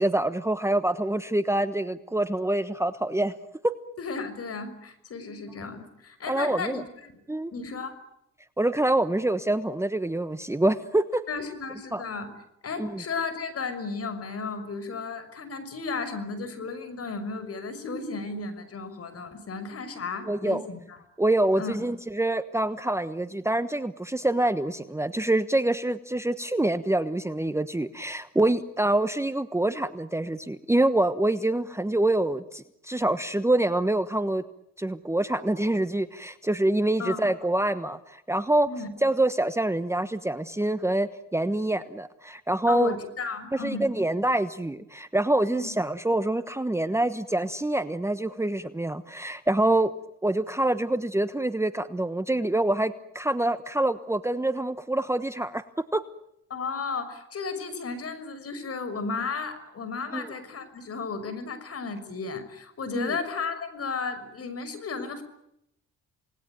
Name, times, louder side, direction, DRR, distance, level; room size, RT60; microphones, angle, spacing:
voice 1, 0.0-3.3 6.3-6.8 7.3-7.5 8.6-11.2 11.9-12.0 12.8-13.0 20.3-20.6 21.2-34.4 34.8-38.7 39.0-42.9 43.5-49.9 50.2-55.6 55.9-56.0 60.1-60.3 62.9-63.2, right 1 dB, 10° right, 12 dB, 1.2 m, -26 dB
voice 2, 4.0-7.1 7.5-8.0 11.3-12.3 12.6-21.0 21.6-21.8 37.0-37.2 38.7-38.9 42.7-43.9 45.5-45.7 56.5-65.2, left 4 dB, 50° left, 12 dB, 6.1 m, -34 dB
28.5 x 20.0 x 9.3 m, 0.79 s
cardioid pair, 90°, 30 cm